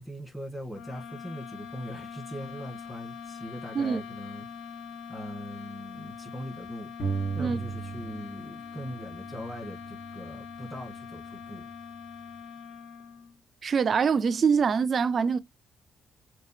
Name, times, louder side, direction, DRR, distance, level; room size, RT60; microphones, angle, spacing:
voice 1, 0.0-4.5 5.1-11.7, equal, ahead, 1.9 m, -41 dB
sound 1, 0.7-13.4, left 6 dB, 75° left, 0.6 m, -43 dB
sound 2, 7.0-8.5 8.8-10.5, right 5 dB, 55° left, 1.4 m, -36 dB
voice 2, 13.6-15.4, right 6 dB, 50° right, 0.4 m, -24 dB
6.4 x 2.3 x 3.2 m
cardioid pair, 90°, 0 cm